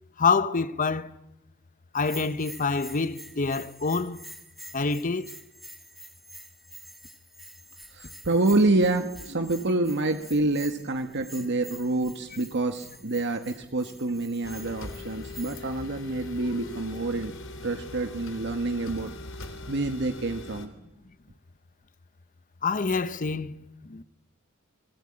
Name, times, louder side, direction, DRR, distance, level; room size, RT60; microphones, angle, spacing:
voice 1, 0.2-1.1 1.9-4.2 4.7-5.3 22.6-24.0, left 4 dB, 40° left, 0.9 m, -27 dB
Bell, 2.0-15.8, right 1 dB, ahead, 2.7 m, -48 dB
voice 2, 7.9-17.3 17.6-19.1 19.4-20.7, right 2 dB, 55° right, 1.4 m, -27 dB
sound 1, 14.4-20.7, left 2 dB, 65° left, 3.6 m, -40 dB
28.0 x 20.5 x 8.8 m
head